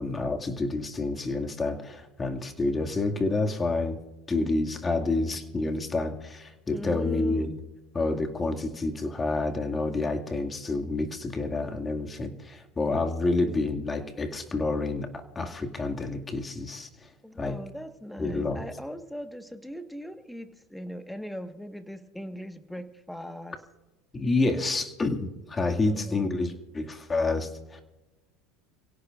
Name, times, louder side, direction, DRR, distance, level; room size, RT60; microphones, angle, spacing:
voice 1, 0.0-4.0 4.3-7.6 7.9-17.1 17.4-17.6 18.2-18.6 24.1-27.8, left 3 dB, 20° left, 4 dB, 2.2 m, -28 dB
voice 2, 6.7-7.5 17.2-23.6 25.8-26.4, equal, 5° left, 7 dB, 1.5 m, -40 dB
29.5 x 17.0 x 2.5 m, 1.1 s
hypercardioid pair, 85°, 0 cm